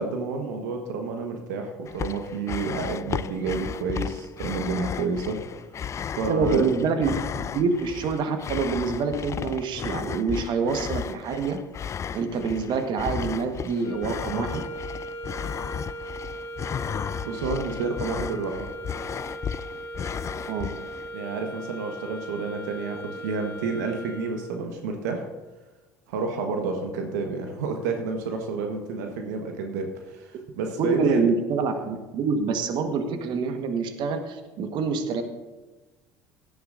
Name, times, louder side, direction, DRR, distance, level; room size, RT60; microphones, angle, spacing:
voice 1, 0.0-5.4 6.2-6.6 17.2-18.7 21.1-25.3 26.1-31.3, right 4 dB, 75° right, 4 dB, 1.3 m, -30 dB
sound 1, 1.9-21.1, left 8 dB, 30° left, 0.3 m, -34 dB
voice 2, 6.3-7.2 7.5-11.6 12.1-14.6 20.5-20.7 30.8-35.2, right 5 dB, 55° right, 6 dB, 1.4 m, -26 dB
sound 2, 13.8-24.7, right 1 dB, 70° left, 2.0 m, -38 dB
17.0 x 12.0 x 2.6 m, 1.2 s
hypercardioid pair, 65°, 9 cm